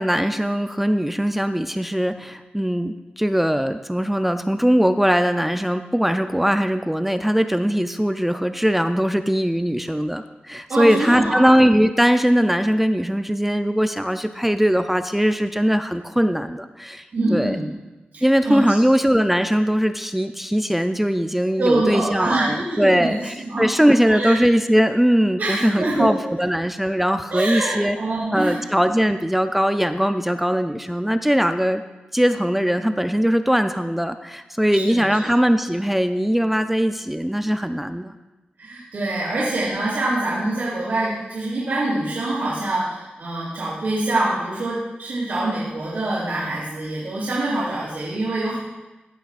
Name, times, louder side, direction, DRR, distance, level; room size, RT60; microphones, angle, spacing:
voice 1, 0.0-17.0 17.3-17.6 18.2-28.0 28.3-31.8 32.1-38.1, equal, 5° right, 9 dB, 0.4 m, -20 dB
voice 2, 10.7-11.4 17.1-17.7 18.1-18.6 21.6-23.6 24.1-24.4 25.4-26.2 27.3-28.6 34.7-35.0 38.6-48.6, right 2 dB, 75° right, -9 dB, 2.7 m, -25 dB
15.0 x 5.7 x 2.4 m, 1.1 s
cardioid pair, 70°, 3 cm